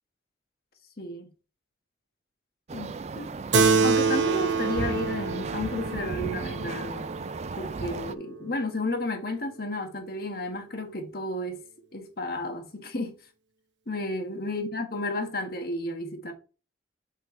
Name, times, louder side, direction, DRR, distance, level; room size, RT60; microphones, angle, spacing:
voice 1, 1.0-1.3 2.7-3.3 3.8-7.1 7.6-11.6 11.9-13.1 13.9-16.3, left 2 dB, 55° left, 1.5 m, -32 dB
sound 1, 2.7-8.1, right 4 dB, 35° right, 0.3 m, -35 dB
Keyboard (musical), 3.5-8.4, right 4 dB, 85° right, 1.0 m, -27 dB
7.4 x 4.5 x 4.4 m
head